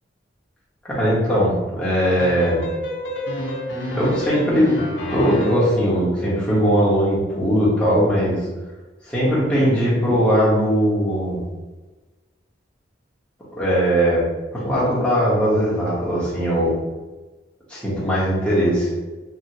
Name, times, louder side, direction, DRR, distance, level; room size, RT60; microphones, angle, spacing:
voice 1, 0.8-2.7 3.9-4.7 5.1-8.4 9.1-11.4 13.6-14.2 14.5-16.8 17.7-18.9, equal, 5° left, -8 dB, 0.9 m, -19 dB
sound 1, 2.2-5.8, equal, 75° left, 0.6 m, -28 dB
2.9 x 2.7 x 2.7 m, 1.2 s
head